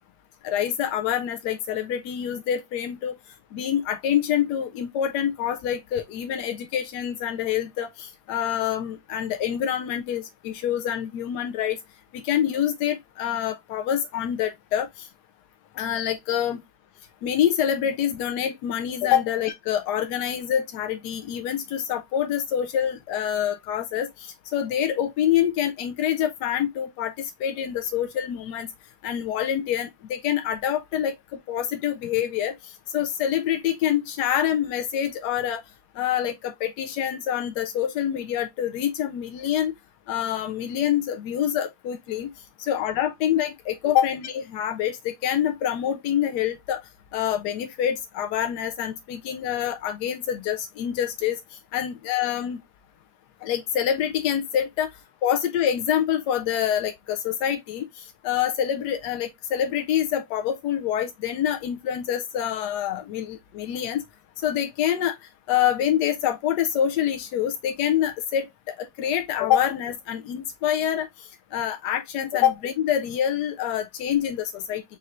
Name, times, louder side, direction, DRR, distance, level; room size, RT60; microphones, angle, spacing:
voice 1, 0.4-3.1 3.5-11.8 12.1-15.1 15.8-16.6 17.2-28.7 29.0-35.6 36.0-39.7 40.1-42.3 42.6-46.8 47.1-51.4 51.7-52.6 53.4-54.9 55.2-64.0 64.4-65.2 65.5-68.5 68.8-74.8, left 10 dB, 70° left, 1.0 m, -26 dB
5.3 x 2.6 x 2.9 m
omnidirectional pair, 2.1 m